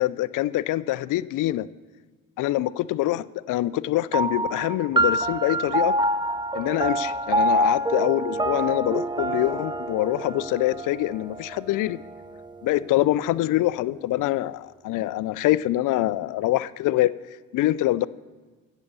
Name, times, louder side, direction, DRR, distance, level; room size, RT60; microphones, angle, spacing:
voice 1, 0.0-1.7 2.4-5.9 6.5-12.0 12.6-17.1 17.5-18.1, left 15 dB, 55° left, 18 dB, 0.4 m, -24 dB
sound 1, 4.1-12.9, right 1 dB, 10° right, 0.5 m, -26 dB
8.4 x 7.3 x 6.7 m, 1.4 s
hypercardioid pair, 50°, 38 cm